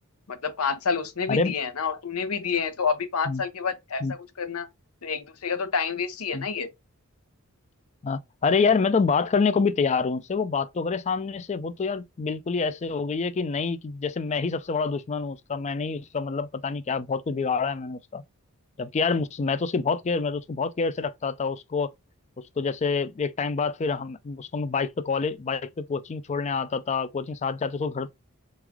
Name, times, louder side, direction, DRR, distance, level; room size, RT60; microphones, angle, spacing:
voice 1, 0.3-4.7 5.0-6.7, left 5 dB, 80° left, 0.8 m, -28 dB
voice 2, 8.0-18.2 18.8-21.9 22.4-28.1, left 4 dB, 30° left, 0.4 m, -27 dB
3.5 x 3.3 x 3.5 m
head